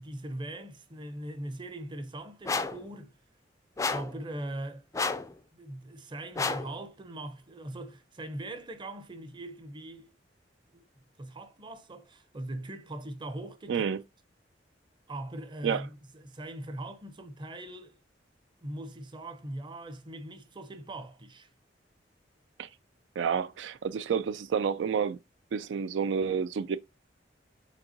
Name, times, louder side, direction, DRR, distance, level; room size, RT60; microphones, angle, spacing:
voice 1, 0.0-3.2 3.9-4.8 5.5-10.1 10.7-10.8 11.2-13.9 15.1-18.0 18.6-21.5, right 1 dB, 25° right, 0.6 m, -41 dB
sound 1, 2.4-2.8 3.8-4.2 4.9-5.3 6.3-6.7, left 4 dB, 15° left, 0.3 m, -30 dB
voice 2, 13.7-14.0 15.6-15.8 22.6-22.7 23.2-25.2 25.5-26.8, right 6 dB, 80° right, 0.3 m, -29 dB
5.2 x 3.7 x 2.7 m
head